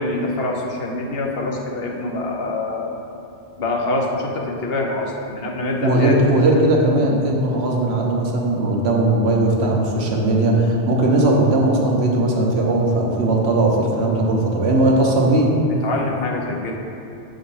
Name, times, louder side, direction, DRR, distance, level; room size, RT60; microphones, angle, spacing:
voice 1, 0.0-2.9 3.6-6.1 15.8-16.7, left 2 dB, 70° left, -1 dB, 1.1 m, -25 dB
voice 2, 5.8-15.5, right 2 dB, 85° right, -1 dB, 1.2 m, -18 dB
7.3 x 3.9 x 5.5 m, 2.7 s
omnidirectional pair, 1.1 m